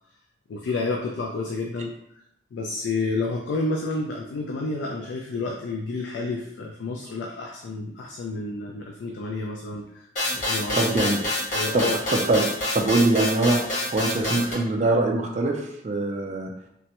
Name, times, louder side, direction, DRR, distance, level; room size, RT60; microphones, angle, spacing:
voice 1, 0.5-2.0 2.5-10.1 10.3-10.9 11.5-12.0, left 3 dB, 80° left, 0 dB, 0.3 m, -30 dB
sound 1, 10.2-14.5, left 1 dB, 40° left, 1.0 m, -27 dB
voice 2, 10.8-11.2 11.7-11.8 12.1-12.5 12.7-13.6 13.9-16.5, right 2 dB, 40° right, 1 dB, 0.3 m, -22 dB
3.3 x 2.0 x 2.9 m, 0.79 s
head